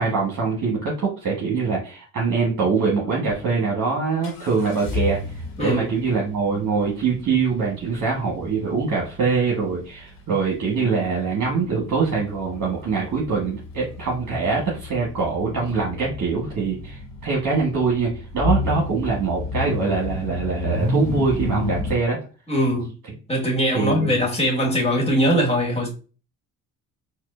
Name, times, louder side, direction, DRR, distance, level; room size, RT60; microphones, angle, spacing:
voice 1, 0.0-5.2 5.6-22.2 23.7-24.1, right 4 dB, 50° right, 1.4 m, -23 dB
sound 1, 3.3-3.4 4.2-22.0, left 2 dB, 90° left, 1.4 m, -31 dB
voice 2, 22.5-22.9 23.3-25.9, equal, 15° left, 1.7 m, -21 dB
4.2 x 2.4 x 2.5 m
supercardioid pair, 65°, 39 cm